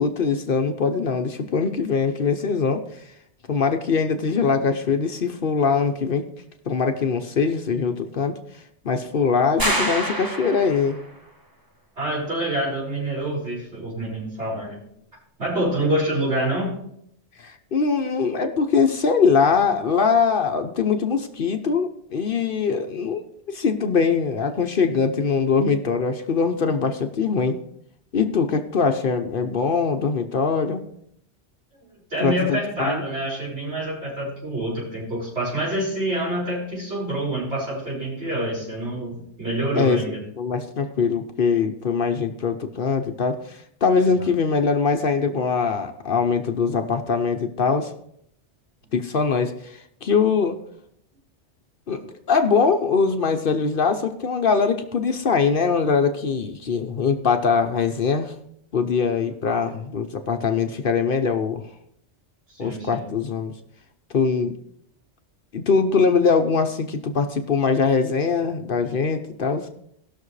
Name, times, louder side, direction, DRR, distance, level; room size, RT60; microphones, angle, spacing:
voice 1, 0.0-2.8 3.5-6.3 6.7-8.3 8.8-11.0 17.4-27.6 28.1-30.9 32.2-33.0 39.8-40.0 40.4-47.9 48.9-50.6 51.9-58.3 58.7-61.6 62.6-63.5 64.1-64.6 65.5-69.7, left 5 dB, 55° left, 6 dB, 0.9 m, -22 dB
sound 1, 9.6-11.1, right 1 dB, 20° right, 1.1 m, -26 dB
voice 2, 12.0-14.8 15.4-16.8 32.1-40.2 48.8-48.9 59.5-59.6 62.5-63.1, right 1 dB, 70° right, -7 dB, 5.7 m, -27 dB
19.0 x 6.5 x 3.2 m, 0.72 s
omnidirectional pair, 1.2 m